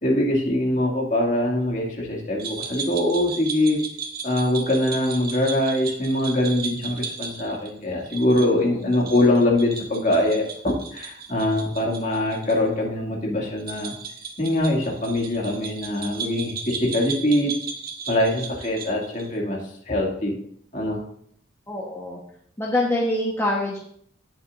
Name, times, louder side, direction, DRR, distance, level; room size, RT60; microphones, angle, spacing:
voice 1, 0.0-3.8 4.2-13.9 14.4-17.5 18.1-19.6 19.9-20.3 20.7-21.0, left 1 dB, 40° left, -1 dB, 2.3 m, -23 dB
sound 1, 2.4-12.6 12.8-12.9 13.6-19.3, right 6 dB, 50° right, 1.4 m, -36 dB
voice 2, 8.4-8.9 21.7-22.2 22.6-23.8, left 1 dB, 15° left, -4 dB, 1.1 m, -25 dB
17.5 x 7.0 x 2.6 m, 0.65 s
head